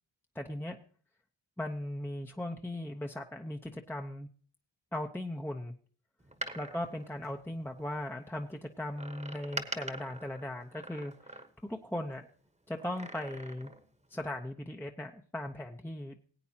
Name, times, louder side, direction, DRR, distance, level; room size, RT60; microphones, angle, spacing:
voice 1, 0.3-0.8 1.6-4.3 4.9-5.7 6.5-11.4 11.7-12.3 12.7-13.7 14.1-16.2, left 1 dB, 5° left, 3 dB, 0.8 m, -38 dB
Door, 6.2-8.0 9.0-11.8 12.8-13.9 14.2-14.3, right 1 dB, 15° right, 1.2 m, -44 dB
19.5 x 8.4 x 2.9 m, 0.42 s
cardioid pair, 45°, 49 cm